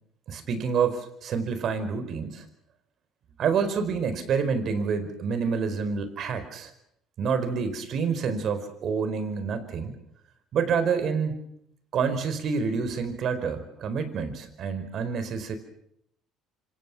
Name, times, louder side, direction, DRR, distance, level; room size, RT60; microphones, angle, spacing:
voice 1, 0.3-2.5 3.4-6.7 7.2-9.9 10.5-11.5 11.9-15.6, right 6 dB, 55° right, 11 dB, 4.7 m, -28 dB
27.0 x 26.0 x 6.2 m, 0.73 s
hypercardioid pair, 65°, 0 cm